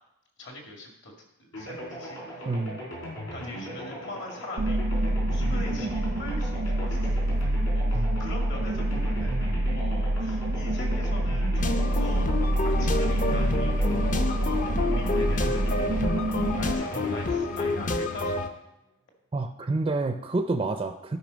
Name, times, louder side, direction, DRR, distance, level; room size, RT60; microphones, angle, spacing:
voice 1, 0.4-1.1 1.4-2.5 3.3-7.3 7.7-9.3 9.7-12.3 12.6-15.9 16.3-18.6, left 1 dB, 60° left, 1 dB, 2.0 m, -42 dB
sound 1, 1.5-18.5, right 1 dB, 90° left, 4.2 m, -39 dB
voice 2, 2.5-2.8 7.9-8.2 19.3-21.2, right 3 dB, 25° right, 6 dB, 0.4 m, -28 dB
sound 2, 4.6-16.7, right 1 dB, 80° right, 0.7 m, -26 dB
sound 3, 11.6-18.5, left 2 dB, 40° left, 0.6 m, -29 dB
12.0 x 5.5 x 5.1 m, 0.88 s
head